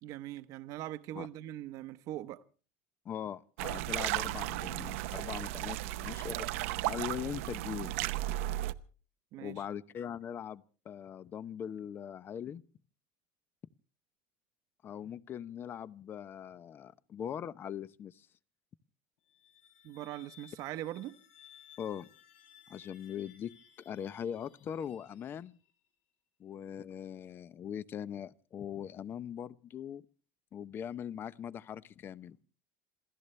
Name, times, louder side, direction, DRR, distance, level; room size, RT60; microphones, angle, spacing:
voice 1, 0.0-2.4 9.3-9.6 19.8-21.2, right 14 dB, 55° right, 1.0 m, -41 dB
voice 2, 3.0-6.5 6.8-7.9 9.4-12.6 14.8-18.3 21.8-22.1 22.7-25.6 26.4-30.0 30.5-32.4, left 9 dB, 30° left, 0.8 m, -41 dB
sound 1, 3.6-8.7, right 16 dB, 90° right, 0.9 m, -35 dB
sound 2, 19.2-25.8, left 9 dB, 90° left, 7.4 m, -60 dB
27.5 x 15.5 x 3.3 m
cardioid pair, 140°, 7 cm